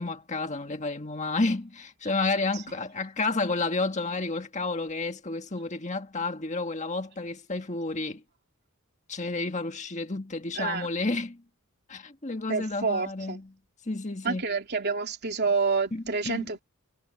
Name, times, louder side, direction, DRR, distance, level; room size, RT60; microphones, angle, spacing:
voice 1, 0.0-8.2 9.1-11.4 11.9-13.5 13.9-14.4 15.9-16.5, left 3 dB, 35° left, 1.6 m, -31 dB
voice 2, 10.5-10.9 12.5-13.4 14.2-16.6, right 4 dB, 50° right, 3.1 m, -28 dB
head